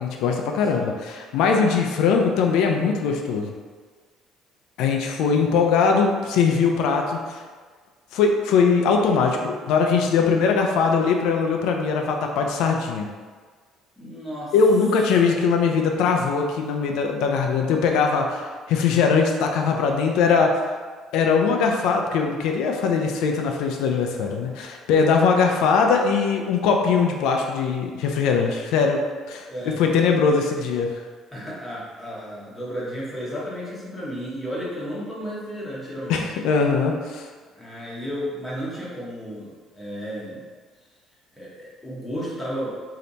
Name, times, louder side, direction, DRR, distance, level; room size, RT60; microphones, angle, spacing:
voice 1, 0.0-3.5 4.8-7.4 8.1-13.1 14.5-20.5 21.1-29.0 29.3-29.5 29.8-30.9 36.1-37.3, left 5 dB, 75° left, 2 dB, 0.4 m, -21 dB
voice 2, 14.0-14.5 29.5-29.8 31.3-36.2 37.5-40.4 41.3-42.8, equal, 5° left, -8 dB, 1.1 m, -33 dB
3.3 x 2.8 x 4.0 m, 1.5 s
cardioid pair, 145°, 0 cm